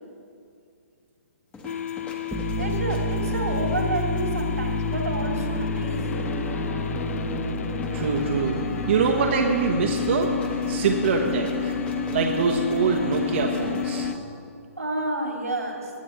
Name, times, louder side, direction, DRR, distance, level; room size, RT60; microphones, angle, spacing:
sound 1, 1.5-14.2, left 1 dB, 15° left, 1.4 m, -35 dB
sound 2, 1.6-14.2, left 8 dB, 65° left, 0.4 m, -32 dB
sound 3, 2.3-13.7, equal, ahead, 0.9 m, -31 dB
voice 1, 2.6-6.3 14.8-15.9, right 1 dB, 85° right, 0 dB, 2.9 m, -30 dB
voice 2, 7.9-8.6 8.9-10.3 10.7-11.8 12.1-14.1, right 5 dB, 50° right, 1 dB, 1.1 m, -24 dB
20.5 x 9.9 x 3.2 m, 2.4 s
figure-of-eight pair, 125°, 8 cm